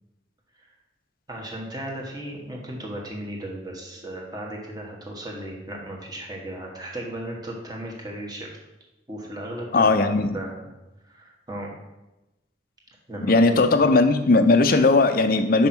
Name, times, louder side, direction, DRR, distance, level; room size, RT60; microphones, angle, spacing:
voice 1, 1.3-8.6 9.1-10.7 11.0-11.7 13.1-13.6, right 1 dB, 20° right, -1 dB, 1.3 m, -36 dB
voice 2, 9.7-10.4 13.3-15.7, left 3 dB, 50° left, 9 dB, 0.5 m, -18 dB
5.4 x 5.3 x 6.0 m, 0.99 s
head